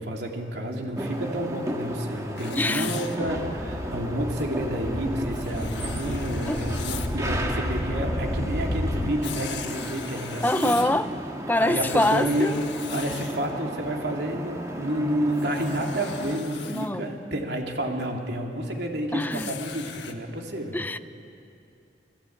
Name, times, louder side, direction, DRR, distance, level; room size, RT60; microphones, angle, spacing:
voice 1, 0.0-11.0 11.6-12.5 12.9-20.8, right 1 dB, 70° right, 1 dB, 3.1 m, -30 dB
sound 1, 1.0-16.4, right 1 dB, 20° right, 1.9 m, -35 dB
Writing, 2.4-3.2 5.3-7.1 9.2-11.0 11.5-13.5 15.3-16.9 19.3-20.1, left 8 dB, 80° left, 1.7 m, -39 dB
voice 2, 2.5-2.9 6.5-6.6 10.4-11.1 11.5-12.5 16.7-17.1 19.1-19.5 20.7-21.0, left 1 dB, 10° left, 11 dB, 0.6 m, -24 dB
sound 2, 3.2-9.1, equal, 40° left, 1.4 m, -32 dB
29.5 x 18.0 x 8.8 m, 2.7 s
head